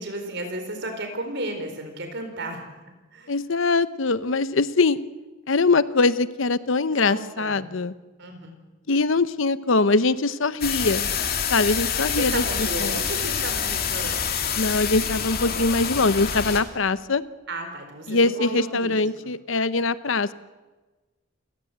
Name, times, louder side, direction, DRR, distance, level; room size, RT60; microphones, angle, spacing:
voice 1, 0.0-2.6 3.1-3.3 7.1-7.6 8.2-8.5 12.0-14.6 17.5-19.0, right 1 dB, 55° right, 6 dB, 4.2 m, -33 dB
voice 2, 3.3-5.0 5.5-7.9 8.9-11.1 11.5-13.0 14.6-17.2 18.1-20.3, left 3 dB, 65° left, 15 dB, 0.8 m, -22 dB
sound 1, 10.6-16.6, left 7 dB, 45° left, 2.8 m, -27 dB
28.5 x 16.5 x 8.1 m, 1.2 s
head